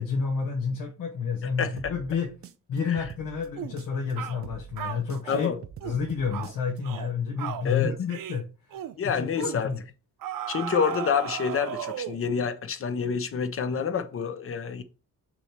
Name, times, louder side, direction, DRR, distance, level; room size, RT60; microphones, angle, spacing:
voice 1, 0.0-2.3 2.7-5.5 5.8-9.8, left 5 dB, 80° left, 1.2 m, -30 dB
voice 2, 1.6-1.9 2.9-3.0 5.3-5.6 7.6-7.9 9.0-9.7 10.5-14.8, left 6 dB, 40° left, 0.6 m, -28 dB
sound 1, 1.8-4.1 4.4-6.8, right 8 dB, 45° right, 0.5 m, -45 dB
sound 2, 3.6-3.8 4.2-4.4 4.8-5.5 5.8-6.0 6.3-6.5 6.8-7.1 7.4-7.7 8.1-8.4 8.7-8.9 9.4-9.6 10.2-12.3, right 10 dB, 80° right, 0.8 m, -35 dB
6.1 x 3.2 x 5.7 m
wide cardioid pair, 175°, 33 cm